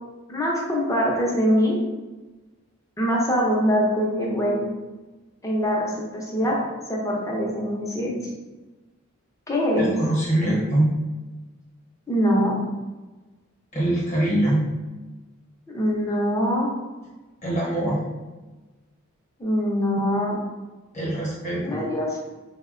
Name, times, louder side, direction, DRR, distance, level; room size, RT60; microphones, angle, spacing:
voice 1, 0.3-1.8 3.0-4.6 5.4-6.6 6.9-8.1 9.5-10.0 12.1-12.6 15.7-16.7 19.4-20.4 21.6-22.2, equal, 15° left, -3 dB, 0.5 m, -23 dB
voice 2, 9.8-11.0 13.7-14.7 17.4-18.0 20.9-21.8, right 1 dB, 35° left, -5 dB, 0.9 m, -23 dB
3.5 x 2.1 x 2.4 m, 1.2 s
head